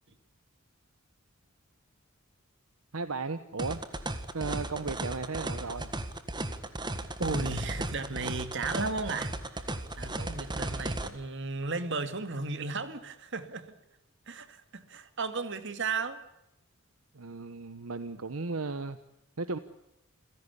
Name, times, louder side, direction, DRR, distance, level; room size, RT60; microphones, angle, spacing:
voice 1, 2.9-3.8 4.3-5.9 17.1-19.0 19.4-19.6, right 4 dB, 80° right, 12 dB, 1.1 m, -35 dB
sound 1, 3.6-11.1, right 1 dB, 20° right, 1.6 m, -35 dB
voice 2, 7.2-13.7 14.3-16.2, right 3 dB, 55° right, 10 dB, 2.2 m, -35 dB
28.5 x 16.5 x 8.3 m, 0.88 s
head